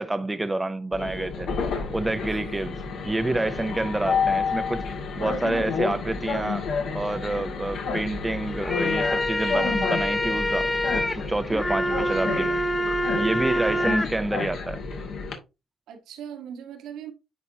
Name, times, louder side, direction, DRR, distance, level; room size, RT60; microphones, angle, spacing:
voice 1, 0.0-1.5 1.9-4.9 5.2-6.7 6.9-12.6 13.1-14.8, right 2 dB, 15° right, 0.5 m, -28 dB
Train, 0.9-15.3, left 5 dB, 75° left, 2.1 m, -30 dB
voice 2, 2.2-2.7 13.7-13.9 15.9-17.1, right 9 dB, 85° right, 1.7 m, -40 dB
sound 1, 8.5-14.1, left 1 dB, 15° left, 1.0 m, -26 dB
10.0 x 4.3 x 2.8 m
cardioid pair, 90°, 0 cm